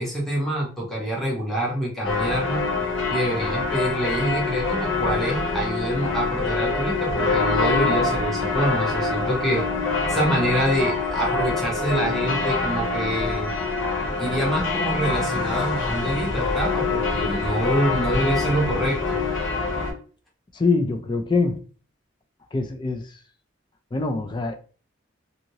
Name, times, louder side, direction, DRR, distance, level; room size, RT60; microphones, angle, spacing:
voice 1, 0.0-2.6 3.1-9.6 10.1-13.5 14.2-19.2, equal, ahead, 0.9 m, -26 dB
sound 1, 2.0-19.9, left 3 dB, 80° left, 0.9 m, -25 dB
voice 2, 20.5-21.6 22.5-23.1 23.9-24.5, left 3 dB, 25° left, 0.3 m, -24 dB
2.7 x 2.6 x 2.8 m
head